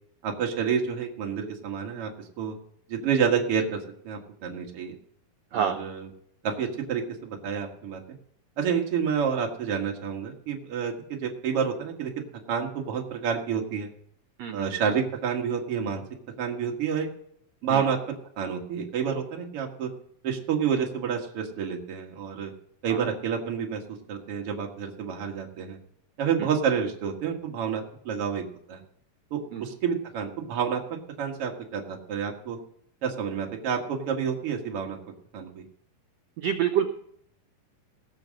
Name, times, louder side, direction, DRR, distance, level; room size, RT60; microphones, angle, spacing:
voice 1, 0.2-2.1 2.4-2.6 2.9-5.0 5.5-6.1 6.4-8.0 8.6-12.1 12.5-13.9 14.5-16.0 16.4-17.1 17.6-18.0 18.4-19.9 20.2-22.5 22.8-23.8 24.1-25.8 26.2-28.4 28.7-28.8 29.3-30.8 31.2-32.6 33.0-35.0 35.3-35.6, right 7 dB, 45° right, 1 dB, 2.4 m, -29 dB
voice 2, 36.4-36.9, right 9 dB, 80° right, 5 dB, 1.5 m, -27 dB
18.5 x 6.8 x 6.5 m, 0.68 s
omnidirectional pair, 4.1 m